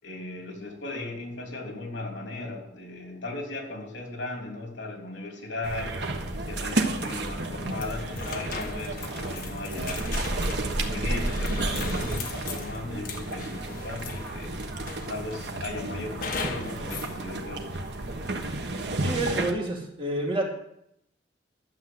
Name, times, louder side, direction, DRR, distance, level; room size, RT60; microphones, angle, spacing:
voice 1, 0.0-6.2 6.5-10.1 10.5-14.5 15.1-17.8, left 2 dB, 75° left, 1 dB, 3.3 m, -37 dB
sound 1, 5.6-19.5, right 2 dB, 60° right, 1.3 m, -31 dB
sound 2, 7.8-14.4 14.9-15.5 16.2-17.1, left 4 dB, 50° left, 1.5 m, -38 dB
voice 2, 19.0-20.4, right 2 dB, 25° right, -1 dB, 2.6 m, -28 dB
12.5 x 7.3 x 7.8 m, 0.77 s
head